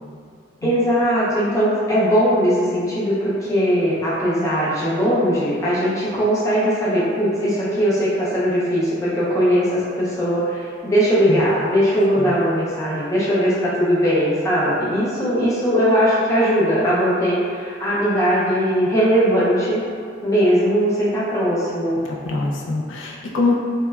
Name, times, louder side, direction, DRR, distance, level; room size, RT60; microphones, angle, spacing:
voice 1, 0.6-19.8 20.2-22.0, equal, 15° left, -9 dB, 0.5 m, -19 dB
voice 2, 22.0-23.5, left 3 dB, 75° left, -2 dB, 0.3 m, -23 dB
2.9 x 2.2 x 2.2 m, 2.2 s
head